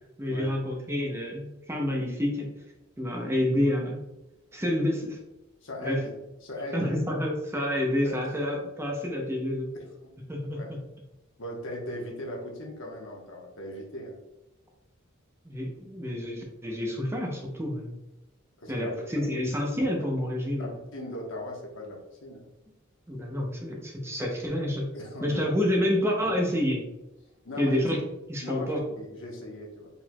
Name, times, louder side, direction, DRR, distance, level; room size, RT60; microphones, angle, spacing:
voice 1, 0.2-2.5 3.0-4.0 4.5-5.2 5.8-6.0 6.7-9.7 10.3-10.8 15.4-18.0 18.7-20.7 23.1-24.9 25.2-26.9 27.6-28.0 28.3-28.8, left 1 dB, 10° right, 0 dB, 0.6 m, -28 dB
voice 2, 5.6-6.1 6.4-6.9 8.0-8.2 9.7-10.1 10.5-10.8 11.4-14.2 18.6-19.5 20.5-22.5 24.9-25.4 27.4-27.8 28.4-28.7 29.0-29.9, left 1 dB, 60° left, -1 dB, 1.0 m, -38 dB
4.4 x 4.0 x 2.2 m, 0.97 s
head